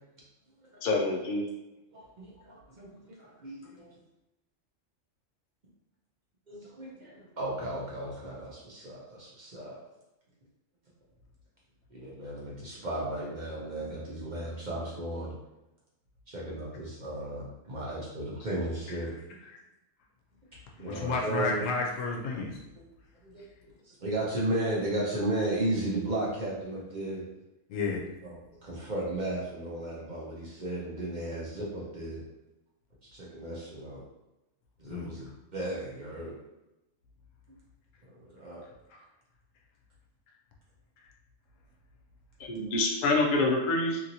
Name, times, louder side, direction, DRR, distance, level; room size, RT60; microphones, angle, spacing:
voice 1, 0.8-1.4 42.5-44.0, left 2 dB, 55° left, -1 dB, 0.6 m, -26 dB
voice 2, 1.9-3.9 6.5-9.8 11.9-15.4 16.3-19.1 20.8-21.6 23.2-23.4 23.8-27.2 28.2-32.2 33.0-34.0 34.8-36.3 38.1-38.6, right 1 dB, 45° right, -6 dB, 0.7 m, -35 dB
voice 3, 20.8-22.6 27.7-28.0 34.9-35.1, left 4 dB, 80° left, 0 dB, 1.0 m, -31 dB
2.9 x 2.8 x 2.6 m, 0.95 s
omnidirectional pair, 1.3 m